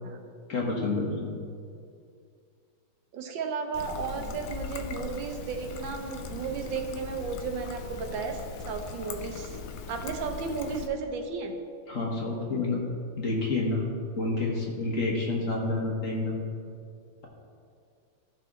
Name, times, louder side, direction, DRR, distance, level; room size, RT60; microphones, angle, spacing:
voice 1, 0.5-1.3 4.2-4.3 11.9-12.8 13.2-13.8 14.2-16.4, left 2 dB, 45° left, -2 dB, 1.5 m, -29 dB
voice 2, 3.1-9.6 9.9-11.5, right 5 dB, 75° right, 4 dB, 1.6 m, -34 dB
Trickle dribble, 3.7-10.9, left 4 dB, 65° left, 0.8 m, -40 dB
15.0 x 5.1 x 3.7 m, 2.4 s
omnidirectional pair, 2.1 m